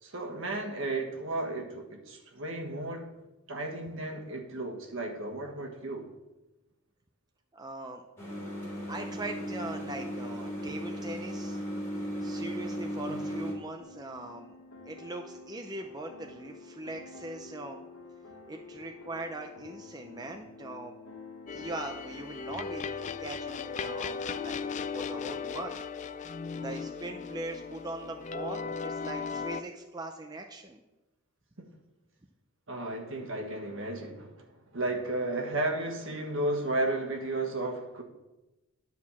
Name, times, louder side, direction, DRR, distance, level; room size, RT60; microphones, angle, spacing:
voice 1, 0.0-3.1 3.5-6.1 13.1-13.2 31.6-31.7 32.7-38.0, right 2 dB, 60° right, 1.5 m, -34 dB
voice 2, 7.5-8.0 8.9-11.6 12.2-14.6 14.8-17.8 18.5-20.9 21.5-25.8 26.5-30.8, right 2 dB, 20° right, 0.5 m, -41 dB
sound 1, 8.2-13.5, equal, 15° left, 3.4 m, -36 dB
sound 2, 13.8-25.5, left 3 dB, 75° left, 1.3 m, -48 dB
sound 3, 21.5-29.6, left 5 dB, 35° left, 0.3 m, -37 dB
11.0 x 4.7 x 7.1 m
head